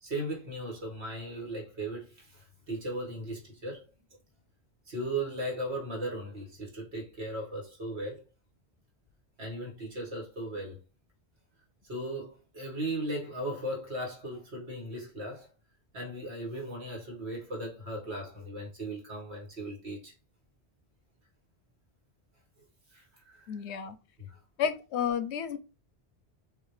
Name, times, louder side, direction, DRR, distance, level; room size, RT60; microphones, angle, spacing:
voice 1, 0.0-3.8 4.9-8.2 9.4-10.8 11.8-15.5 15.9-20.1 22.9-23.6 24.2-24.3, right 1 dB, 80° right, 2.1 m, -37 dB
voice 2, 23.5-24.0 24.6-25.6, left 8 dB, 85° left, 0.9 m, -31 dB
5.8 x 2.7 x 3.2 m
omnidirectional pair, 1.1 m